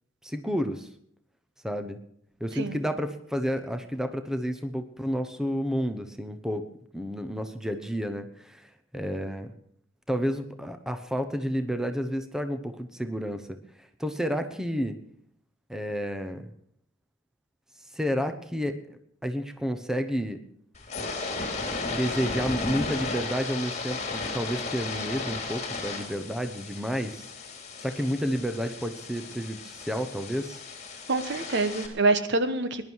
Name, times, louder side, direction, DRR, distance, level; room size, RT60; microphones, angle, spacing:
voice 1, 0.2-0.9 1.6-2.0 2.4-6.6 6.9-9.5 10.1-13.5 13.8-15.0 15.7-16.4 17.9-20.4 21.9-27.3 27.8-30.6, equal, 5° right, 8 dB, 0.9 m, -30 dB
sound 1, 20.7-31.9, left 3 dB, 35° left, 2.8 m, -35 dB
voice 2, 31.1-32.9, right 3 dB, 60° right, 10 dB, 1.2 m, -26 dB
20.0 x 11.5 x 4.7 m, 0.68 s
head